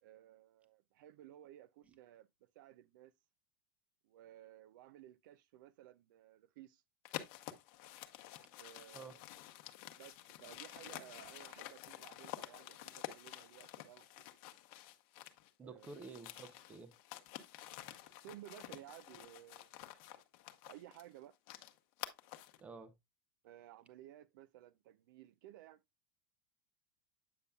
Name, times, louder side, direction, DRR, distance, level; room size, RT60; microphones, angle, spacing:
voice 1, 0.0-3.1 4.0-6.8 8.6-9.2 9.9-14.5 15.6-16.1 18.2-19.7 20.7-21.3 23.4-25.8, right 13 dB, 60° right, 0.4 m, -57 dB
sound 1, 7.0-15.5 15.8-22.6, left 14 dB, 45° left, 0.9 m, -50 dB
voice 2, 15.6-16.9 22.6-22.9, right 4 dB, 10° right, 0.5 m, -51 dB
8.5 x 6.7 x 2.3 m
supercardioid pair, 175°, 12 cm